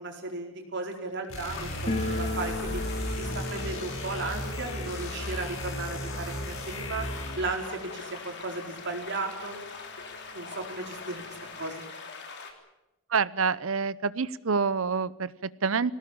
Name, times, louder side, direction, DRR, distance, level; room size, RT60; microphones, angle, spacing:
voice 1, 0.0-2.8 3.2-7.1 7.4-9.6 10.3-12.0, right 3 dB, 60° right, 2 dB, 4.6 m, -35 dB
sound 1, 1.3-7.5, equal, 80° left, 5.5 m, -35 dB
sound 2, 1.5-12.5, left 4 dB, 55° left, 3.2 m, -42 dB
sound 3, 1.9-8.6 8.8-8.9 9.2-9.3 10.0-10.1 10.4-11.6, left 2 dB, 35° left, 2.4 m, -38 dB
voice 2, 13.1-15.9, right 5 dB, 75° right, 18 dB, 0.8 m, -27 dB
22.0 x 18.0 x 8.7 m, 0.99 s
head